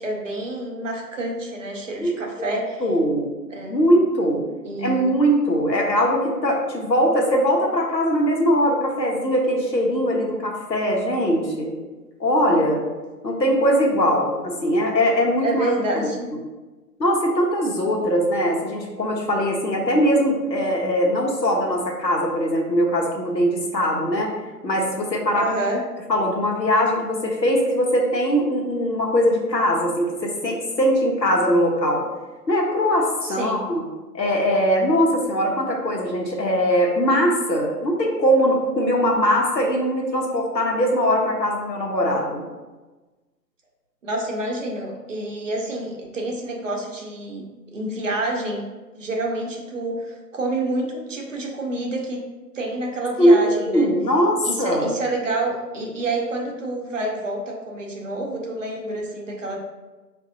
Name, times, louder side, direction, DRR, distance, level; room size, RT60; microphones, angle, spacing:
voice 1, 0.0-2.8 3.5-3.8 4.6-5.1 15.4-16.3 25.3-25.8 33.2-33.6 44.0-47.4 47.7-48.6 48.9-52.2 52.5-53.9 54.4-59.6, right 2 dB, 50° right, 0 dB, 0.8 m, -28 dB
voice 2, 2.8-3.3 3.7-4.4 4.8-11.7 12.2-12.8 13.2-15.6 17.0-24.3 24.6-25.5 26.1-32.0 32.5-33.8 34.1-42.4 53.2-54.8, equal, 85° left, -1 dB, 1.0 m, -21 dB
4.8 x 2.6 x 2.6 m, 1.2 s
figure-of-eight pair, 140°, 49 cm